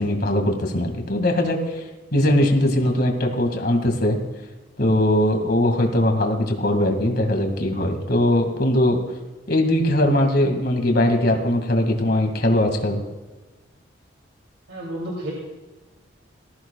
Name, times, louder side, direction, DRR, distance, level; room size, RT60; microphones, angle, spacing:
voice 1, 0.0-1.8 2.1-4.2 4.8-9.0 9.5-13.0, left 1 dB, 50° left, 4 dB, 2.1 m, -20 dB
voice 2, 14.7-15.3, right 1 dB, 80° right, -2 dB, 3.0 m, -30 dB
19.5 x 14.5 x 2.4 m, 1.2 s
head